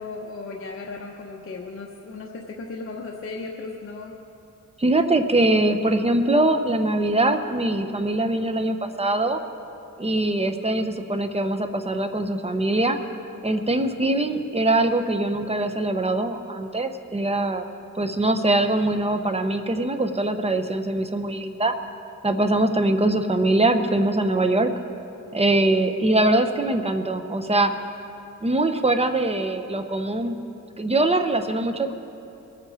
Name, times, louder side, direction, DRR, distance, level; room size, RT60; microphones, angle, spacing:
voice 1, 0.0-4.1, left 3 dB, 45° left, -1 dB, 1.0 m, -36 dB
voice 2, 4.8-9.4 10.0-13.0 13.4-17.7 18.0-21.7 22.2-24.7 25.3-27.7 28.4-30.4 30.8-31.9, right 2 dB, 20° right, 7 dB, 0.8 m, -22 dB
22.0 x 8.6 x 4.9 m, 2.7 s
wide cardioid pair, 115°, 31 cm